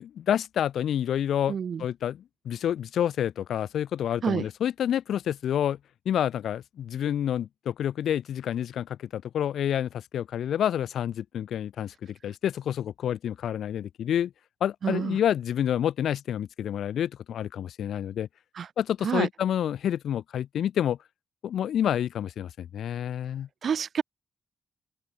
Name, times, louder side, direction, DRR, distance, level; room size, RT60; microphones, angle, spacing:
voice 1, 0.0-5.8 6.0-14.3 14.6-18.3 18.8-21.0 21.4-23.5, left 10 dB, 75° left, 2.9 m, -28 dB
voice 2, 1.5-1.8 4.2-4.4 14.8-15.2 18.5-18.7 19.0-19.3 23.6-24.0, right 7 dB, 60° right, 6.6 m, -28 dB
open air
hypercardioid pair, 45°, 0 cm